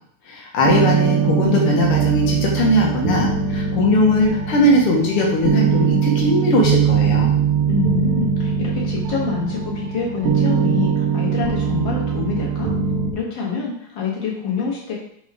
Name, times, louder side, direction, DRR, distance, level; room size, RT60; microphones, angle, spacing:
voice 1, 0.3-7.3, left 1 dB, 90° left, -2 dB, 2.0 m, -19 dB
sound 1, 0.6-13.1, right 7 dB, 90° right, 1.6 m, -21 dB
voice 2, 7.7-12.7 13.1-14.9, left 5 dB, 60° left, -3 dB, 2.3 m, -26 dB
4.8 x 4.3 x 4.8 m, 0.70 s
omnidirectional pair, 2.4 m